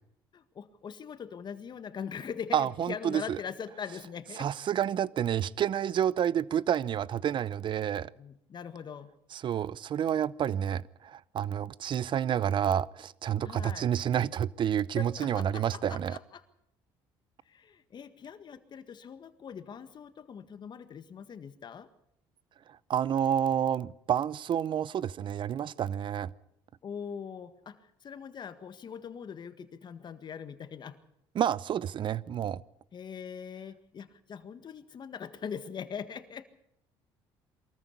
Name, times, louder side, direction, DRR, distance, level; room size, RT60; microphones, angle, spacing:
voice 1, 0.3-4.5 8.2-9.1 13.4-13.9 15.0-16.4 17.5-21.9 26.8-31.0 32.9-36.5, left 7 dB, 45° left, 11 dB, 1.8 m, -42 dB
voice 2, 2.5-3.4 4.4-8.1 9.3-16.2 22.9-26.3 31.3-32.6, right 9 dB, 50° right, 21 dB, 0.7 m, -29 dB
22.5 x 14.0 x 8.3 m, 0.77 s
supercardioid pair, 80°, 10 cm